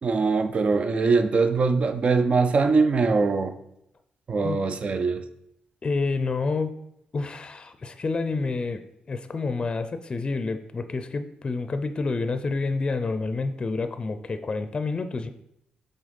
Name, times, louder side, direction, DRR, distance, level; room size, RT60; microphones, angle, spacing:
voice 1, 0.0-3.6 4.3-5.2, right 4 dB, 50° right, 9 dB, 0.6 m, -22 dB
voice 2, 5.8-6.7 7.1-15.3, left 3 dB, 35° left, 10 dB, 0.5 m, -28 dB
6.3 x 4.0 x 5.2 m, 0.79 s
cardioid pair, 95°, 3 cm